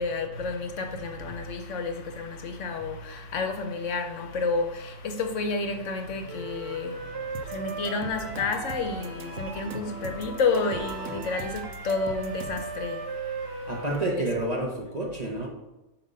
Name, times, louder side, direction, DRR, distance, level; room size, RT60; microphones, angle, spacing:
voice 1, 0.0-7.0 7.4-13.0, left 4 dB, 65° left, 1.0 m, -30 dB
sound 1, 5.8-11.2, equal, 10° right, 1.5 m, -44 dB
Wind instrument woodwind instrument, 6.3-9.8 10.6-14.3, right 5 dB, 60° right, 0.7 m, -38 dB
sound 2, 7.3-12.7, right 2 dB, 75° right, 1.0 m, -41 dB
voice 2, 13.7-15.5, right 1 dB, 35° right, 0.8 m, -29 dB
7.1 x 2.9 x 5.4 m
omnidirectional pair, 1.4 m